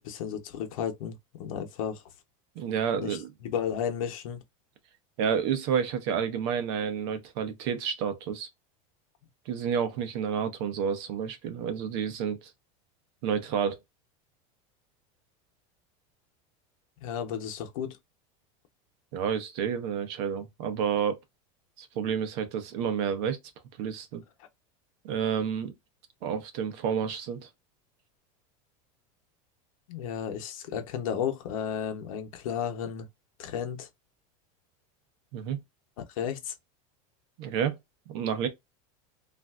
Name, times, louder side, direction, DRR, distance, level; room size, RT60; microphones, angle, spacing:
voice 1, 0.0-2.0 3.0-4.4 17.0-18.0 29.9-33.1 33.4-33.9 36.1-36.5, left 8 dB, 80° left, 0.8 m, -33 dB
voice 2, 2.6-3.3 5.2-8.5 9.5-12.4 13.2-13.8 19.1-21.2 21.8-23.4 23.8-24.2 25.0-25.7 26.2-27.5 35.3-35.6 37.4-37.8 38.1-38.5, right 7 dB, 50° right, 0.7 m, -30 dB
3.2 x 2.5 x 2.4 m
supercardioid pair, 170°, 17 cm